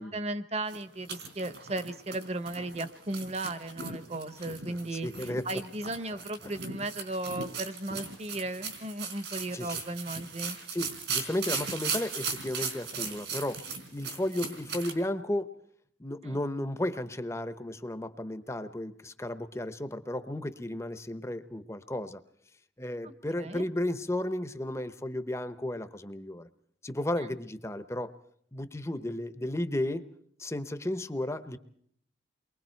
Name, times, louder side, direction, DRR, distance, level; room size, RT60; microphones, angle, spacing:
voice 1, 0.0-10.6 16.2-16.4 23.0-23.1 23.4-23.6, right 2 dB, 35° right, 11 dB, 1.0 m, -36 dB
sound 1, 0.7-14.9, right 5 dB, 70° right, 4.1 m, -38 dB
voice 2, 4.7-5.5 6.4-6.5 9.5-9.8 10.7-13.6 13.9-15.5 16.0-22.2 22.8-26.5 26.8-28.1 28.5-30.0 30.4-31.6, left 1 dB, 15° left, 11 dB, 0.8 m, -34 dB
29.5 x 22.5 x 4.5 m, 0.64 s
head